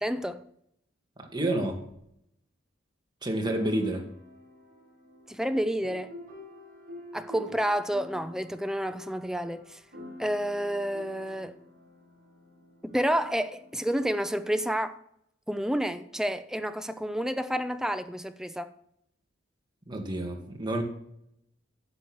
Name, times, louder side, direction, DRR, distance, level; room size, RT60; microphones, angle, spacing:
voice 1, 0.0-0.4 5.3-6.1 7.1-9.8 10.2-11.6 12.8-15.0 15.5-18.7, equal, 5° right, 0.5 m, -29 dB
voice 2, 1.2-1.8 3.2-4.1 19.9-20.8, right 1 dB, 20° right, 2.1 m, -29 dB
sound 1, 1.9-2.0 3.4-14.6, equal, 50° right, 5.9 m, -48 dB
11.5 x 8.2 x 6.3 m
head